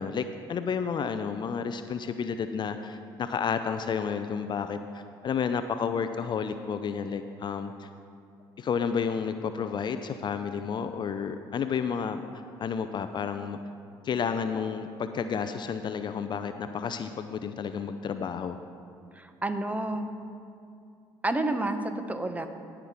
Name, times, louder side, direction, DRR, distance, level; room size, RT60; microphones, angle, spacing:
voice 1, 0.0-7.9 8.6-12.2 12.6-13.6 14.0-18.6, left 6 dB, 45° left, 9 dB, 0.5 m, -31 dB
voice 2, 19.1-20.1 21.2-22.5, right 2 dB, 15° right, 8 dB, 0.8 m, -30 dB
17.0 x 5.9 x 3.6 m, 2.4 s
hypercardioid pair, 60°, 11 cm